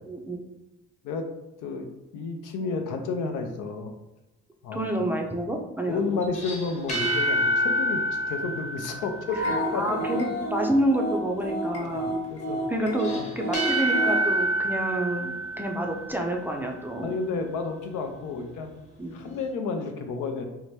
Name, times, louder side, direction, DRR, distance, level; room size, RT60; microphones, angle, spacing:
voice 1, 0.1-0.4 4.7-6.2 9.7-12.2 12.7-15.3 15.6-17.1 18.3-18.4 19.0-19.2, right 1 dB, 5° right, 1 dB, 0.4 m, -28 dB
voice 2, 1.6-3.9 4.6-4.9 5.9-10.2 11.8-12.6 13.1-13.3 17.0-18.7 19.1-20.4, left 4 dB, 85° left, 5 dB, 0.5 m, -31 dB
sound 1, 6.2-9.7 13.0-16.5, right 1 dB, 25° left, 0.8 m, -27 dB
sound 2, 9.3-14.2, right 1 dB, 55° left, 1.0 m, -30 dB
2.7 x 2.1 x 3.1 m, 1.0 s
cardioid pair, 90°, 30 cm